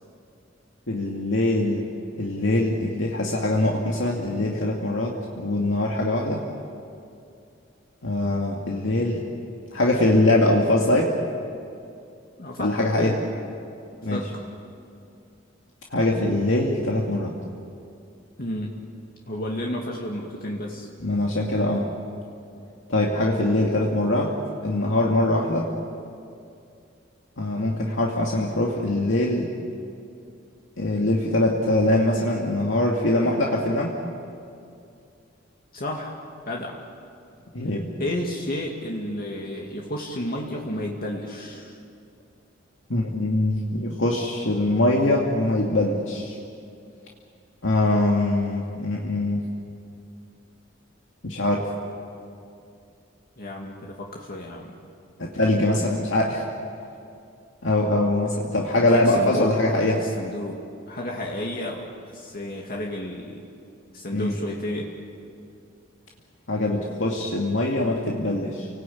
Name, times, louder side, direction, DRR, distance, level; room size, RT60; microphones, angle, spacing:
voice 1, 0.9-1.9 2.2-6.4 8.0-9.3 9.7-11.1 12.6-13.1 14.0-14.3 15.9-17.3 21.0-21.9 22.9-24.3 24.6-25.7 27.4-29.5 30.8-33.9 37.5-37.9 42.9-46.4 47.6-49.5 51.2-51.7 55.2-56.4 57.6-60.0 64.1-64.3 66.5-68.7, left 1 dB, 80° left, -2 dB, 2.3 m, -23 dB
voice 2, 12.4-13.2 14.1-14.4 18.4-18.8 19.3-20.9 35.7-36.2 36.5-36.8 38.0-41.8 53.4-54.8 58.3-58.5 58.9-59.6 59.8-63.4 63.9-64.9, left 1 dB, 50° left, -1 dB, 2.3 m, -32 dB
29.5 x 19.0 x 8.6 m, 2.5 s
head